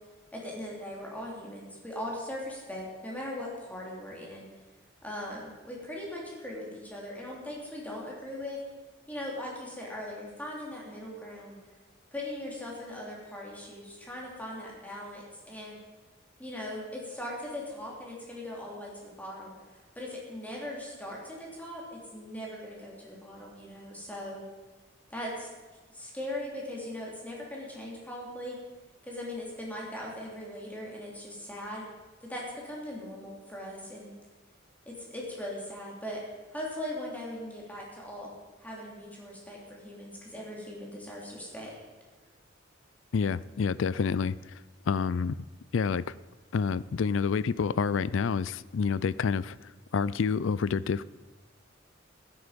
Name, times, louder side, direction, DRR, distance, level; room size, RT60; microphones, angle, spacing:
voice 1, 0.3-4.5 5.0-8.6 9.1-11.6 12.1-15.7 16.4-19.5 19.9-24.4 25.1-25.5 25.9-28.6 29.0-31.8 32.2-34.1 34.8-36.2 36.5-38.3 38.6-41.7, left 1 dB, 10° left, -3 dB, 3.4 m, -39 dB
voice 2, 43.1-44.6 44.9-45.4 45.7-46.1 46.5-49.6 49.9-51.0, left 5 dB, 70° left, 19 dB, 0.4 m, -28 dB
16.0 x 10.0 x 5.2 m, 1.3 s
head